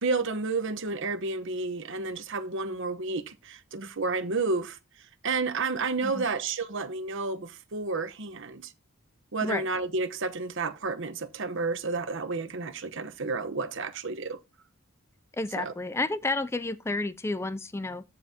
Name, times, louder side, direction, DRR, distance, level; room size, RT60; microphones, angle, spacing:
voice 1, 0.0-8.7 9.3-14.4 15.6-15.7, right 3 dB, 60° right, 1.0 m, -31 dB
voice 2, 15.4-18.0, left 2 dB, 10° left, 0.4 m, -31 dB
15.0 x 5.4 x 2.8 m
head